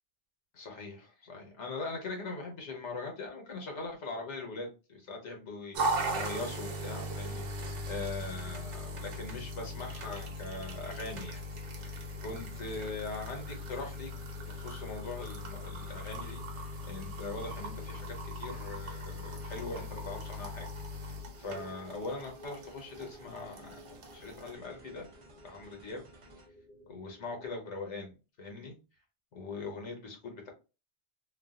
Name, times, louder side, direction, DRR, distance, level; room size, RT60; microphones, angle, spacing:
voice 1, 0.5-11.4 11.8-14.1 14.5-20.7 21.0-25.1 25.4-26.0 26.9-28.8 29.3-30.5, left 3 dB, 85° left, 2 dB, 1.2 m, -41 dB
sound 1, 5.7-24.5, equal, 90° right, 1.1 m, -39 dB
sound 2, 9.6-27.5, left 1 dB, 60° left, 0.7 m, -57 dB
sound 3, 9.9-26.5, right 2 dB, 40° right, 0.5 m, -56 dB
3.0 x 2.4 x 2.4 m, 0.30 s
omnidirectional pair, 1.2 m